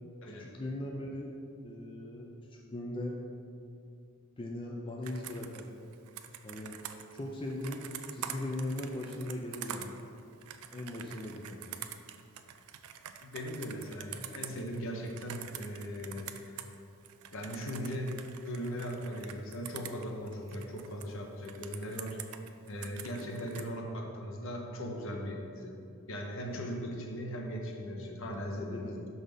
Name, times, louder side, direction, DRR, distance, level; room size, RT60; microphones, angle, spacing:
voice 1, 0.4-1.3 1.6-3.2 4.4-5.7 6.4-6.8 7.1-7.8 8.1-9.9 10.7-11.8 28.5-28.9, left 1 dB, 20° left, -1 dB, 0.4 m, -39 dB
Computer keyboard, 5.0-16.8 17.0-21.1 21.4-23.7, right 10 dB, 75° right, 0.4 m, -46 dB
voice 2, 13.2-16.8 17.3-22.2 22.7-25.7 26.1-29.0, equal, 60° left, 1 dB, 0.9 m, -39 dB
6.1 x 4.0 x 5.2 m, 2.5 s
head